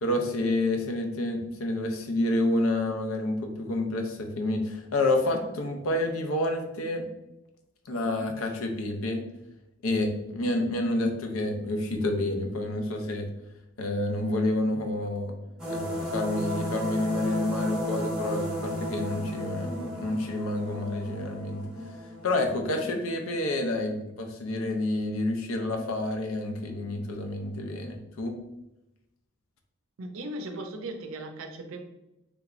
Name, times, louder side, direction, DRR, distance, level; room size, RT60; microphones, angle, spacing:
voice 1, 0.0-7.1 7.9-9.2 9.8-13.3 13.8-15.4 15.7-21.7 22.2-28.4, left 1 dB, 80° left, 4 dB, 0.6 m, -29 dB
sound 1, 15.6-22.6, equal, 5° right, 0.8 m, -34 dB
voice 2, 30.0-31.8, right 1 dB, 70° right, 5 dB, 0.5 m, -37 dB
3.5 x 3.0 x 2.4 m, 0.91 s
head